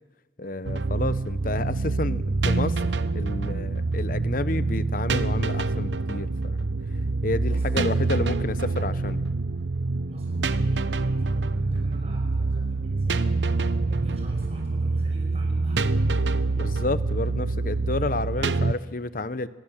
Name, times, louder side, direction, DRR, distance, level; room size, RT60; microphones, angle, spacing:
voice 1, 0.4-2.8 3.1-6.6 7.2-9.2 16.6-19.5, left 2 dB, 50° left, 14 dB, 0.9 m, -30 dB
sound 1, 0.6-18.7, right 3 dB, 85° right, 0.8 m, -26 dB
voice 2, 7.4-8.4 10.1-13.4 13.8-16.7, equal, 35° right, -1 dB, 5.7 m, -43 dB
25.0 x 21.5 x 7.3 m, 1.2 s
head